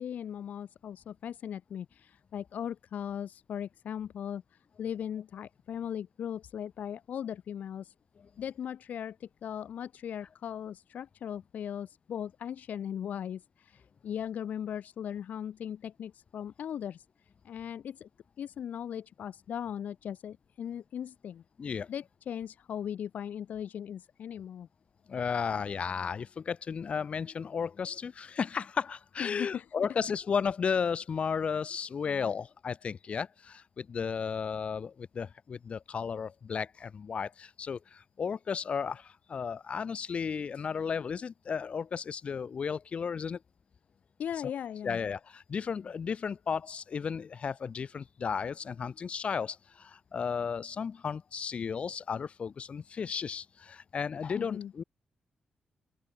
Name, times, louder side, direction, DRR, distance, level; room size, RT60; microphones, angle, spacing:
voice 1, 0.0-7.9 8.4-17.0 17.4-18.1 18.4-21.4 21.9-24.7 29.2-29.7 32.1-32.3 44.2-45.0 54.3-54.7, left 9 dB, 75° left, 2.6 m, -38 dB
voice 2, 21.6-21.9 25.1-43.4 44.8-54.8, left 6 dB, 45° left, 7.4 m, -34 dB
open air
wide cardioid pair, 150°, 3 cm